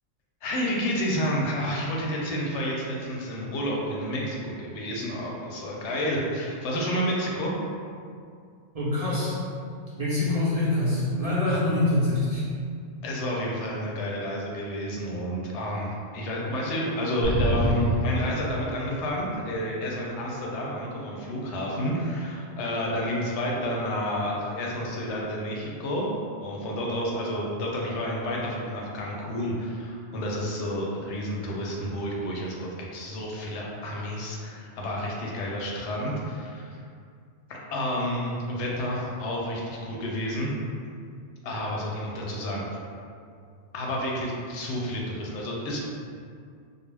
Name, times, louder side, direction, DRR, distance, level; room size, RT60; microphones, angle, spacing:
voice 1, 0.4-7.5 11.5-11.6 13.0-26.1 26.4-36.8 37.5-40.5 41.4-42.8 43.7-45.8, equal, 90° left, -2 dB, 0.9 m, -30 dB
voice 2, 8.7-9.3 10.0-12.4, left 2 dB, 45° right, -10 dB, 0.5 m, -25 dB
sound 1, 17.2-19.1, left 1 dB, 70° right, 0.9 m, -27 dB
2.3 x 2.0 x 3.2 m, 2.3 s
omnidirectional pair, 1.1 m